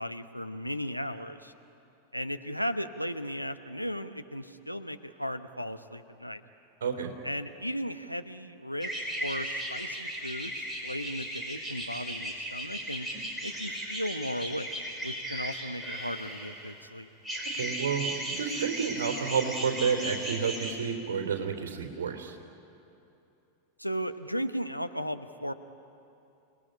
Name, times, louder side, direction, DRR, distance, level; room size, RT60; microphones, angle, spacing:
voice 1, 0.0-1.5 2.1-6.4 7.2-13.1 13.4-14.8 15.0-17.1 23.8-25.5, equal, 90° left, 8 dB, 1.0 m, -36 dB
voice 2, 6.8-7.1 17.5-22.4, right 6 dB, 60° right, 4 dB, 3.4 m, -30 dB
sound 1, 8.8-16.8 17.2-20.7, right 1 dB, 5° right, 4.9 m, -36 dB
29.5 x 19.5 x 9.8 m, 2.8 s
figure-of-eight pair, 90°, 0 cm